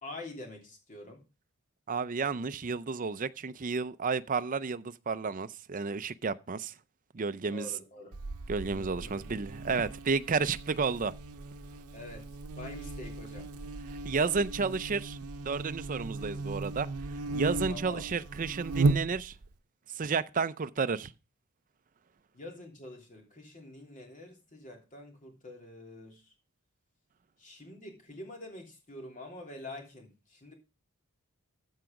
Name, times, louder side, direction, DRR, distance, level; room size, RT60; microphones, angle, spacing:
voice 1, 0.0-1.2 7.5-8.1 8.7-9.1 11.9-12.3 12.5-13.5 17.7-18.1 22.3-26.2 27.4-30.5, left 2 dB, 35° left, 2.9 m, -46 dB
voice 2, 1.9-6.7 7.1-7.7 8.5-11.1 14.0-15.2 15.4-16.9 17.3-19.3 20.0-21.1, right 5 dB, 35° right, 0.5 m, -31 dB
Buzz, 8.1-19.5, right 3 dB, 80° right, 0.7 m, -36 dB
14.0 x 4.8 x 5.1 m
head